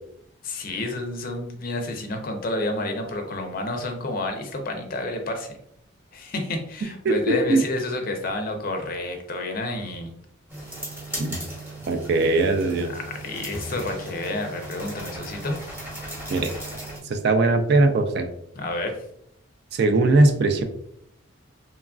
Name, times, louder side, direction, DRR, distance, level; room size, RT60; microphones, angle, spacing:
voice 1, 0.4-5.5 6.1-10.1 12.9-15.7 18.6-19.0, left 2 dB, 45° left, 4 dB, 0.5 m, -30 dB
voice 2, 7.0-7.6 11.2-11.4 11.9-12.9 16.3-16.5 17.0-18.3 19.7-20.6, right 2 dB, 50° right, 7 dB, 0.3 m, -20 dB
sound 1, 10.5-17.0, right 1 dB, 10° right, 0.9 m, -37 dB
3.0 x 2.4 x 2.3 m, 0.72 s
head